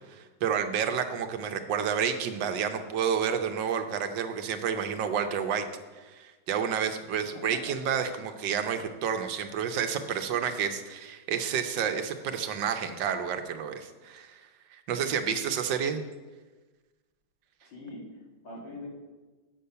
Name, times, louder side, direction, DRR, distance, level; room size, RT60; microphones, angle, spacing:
voice 1, 0.1-5.6 6.0-14.4 14.9-16.0, right 7 dB, 75° right, 7 dB, 1.4 m, -30 dB
voice 2, 7.2-7.7 17.6-18.1 18.4-18.9, left 2 dB, 80° left, -3 dB, 2.8 m, -43 dB
8.2 x 6.7 x 5.6 m, 1.3 s
omnidirectional pair, 2.0 m